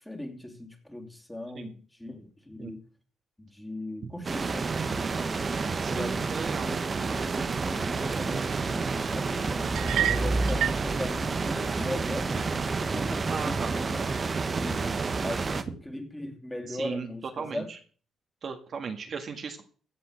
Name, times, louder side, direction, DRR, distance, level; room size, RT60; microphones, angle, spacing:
voice 1, 0.0-2.8 3.4-6.3 6.6-6.8 7.1-15.0 15.2-17.7, left 1 dB, 10° left, 3 dB, 2.9 m, -39 dB
sound 1, 4.2-15.6, right 4 dB, 35° right, 1.0 m, -30 dB
voice 2, 5.8-6.7 10.5-10.8 13.3-13.8 16.7-17.1 17.4-17.8 18.4-19.6, right 5 dB, 50° right, 4 dB, 1.8 m, -36 dB
Car / Engine, 7.3-15.7, right 1 dB, 15° right, 2.8 m, -37 dB
sound 2, 9.8-10.9, right 11 dB, 75° right, 0.5 m, -28 dB
16.0 x 5.6 x 6.4 m, 0.41 s
cardioid pair, 90°, 0 cm